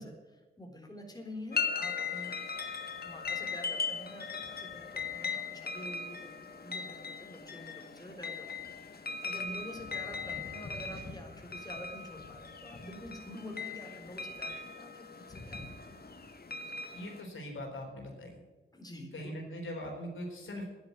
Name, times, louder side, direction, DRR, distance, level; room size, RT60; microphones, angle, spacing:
voice 1, 0.0-2.4 3.0-6.3 6.6-15.6 18.7-19.3, left 1 dB, 20° left, 2 dB, 4.2 m, -47 dB
sound 1, 1.5-17.2, left 5 dB, 50° left, 1.7 m, -39 dB
voice 2, 16.9-18.4 19.1-20.7, equal, 75° left, 0 dB, 4.3 m, -41 dB
11.0 x 11.0 x 9.6 m, 1.2 s
cardioid pair, 45°, 21 cm